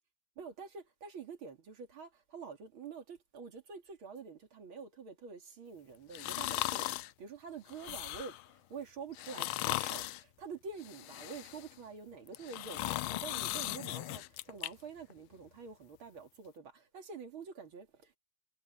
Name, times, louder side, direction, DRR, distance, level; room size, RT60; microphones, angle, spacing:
voice 1, 0.4-18.2, right 5 dB, 85° right, 3.4 m, -47 dB
sound 1, 6.1-7.1 7.7-8.4 9.1-10.2 10.8-11.7 12.3-14.7 15.1-15.2, left 17 dB, 85° left, 1.4 m, -37 dB
omnidirectional pair, 2.2 m